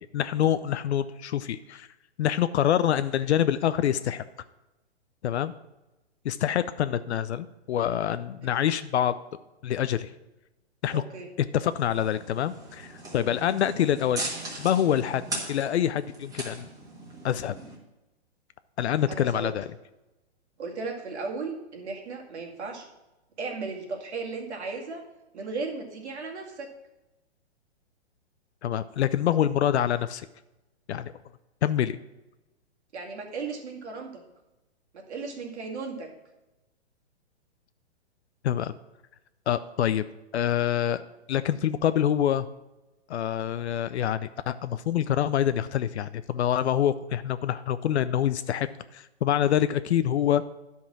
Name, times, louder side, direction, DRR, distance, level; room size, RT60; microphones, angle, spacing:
voice 1, 0.1-1.9 2.2-4.2 5.2-5.5 6.2-9.2 9.6-10.1 10.8-11.0 11.5-14.2 14.6-15.2 15.5-16.7 17.2-17.5 18.8-19.6 28.6-30.3 30.9-31.1 31.6-32.0 38.4-38.7 39.5-40.0 40.3-41.0 41.3-42.5 43.1-48.7 48.9-50.4, left 10 dB, 75° left, 13 dB, 0.5 m, -26 dB
voice 2, 10.9-11.3 13.5-13.6 19.1-19.5 20.6-22.9 23.4-25.0 25.3-26.7 32.9-34.2 34.9-36.1, right 4 dB, 80° right, 1 dB, 2.2 m, -36 dB
sound 1, 11.7-17.8, right 2 dB, 10° right, 1.4 m, -39 dB
10.0 x 5.5 x 6.0 m, 1.0 s
hypercardioid pair, 145°, 34 cm